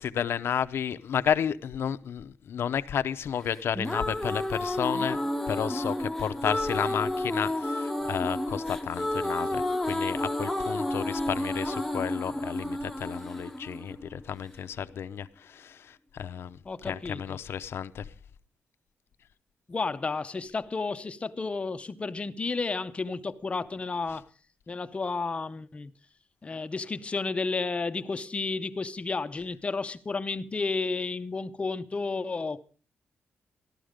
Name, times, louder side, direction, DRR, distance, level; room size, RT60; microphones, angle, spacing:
voice 1, 0.0-5.2 5.5-18.1, left 8 dB, 70° left, 0.7 m, -32 dB
sound 1, 3.5-14.5, left 1 dB, ahead, 1.0 m, -31 dB
voice 2, 16.7-17.4 19.7-24.3 24.7-25.9 26.4-32.6, left 4 dB, 30° left, 0.7 m, -32 dB
14.5 x 12.0 x 5.0 m
wide cardioid pair, 140°, 4 cm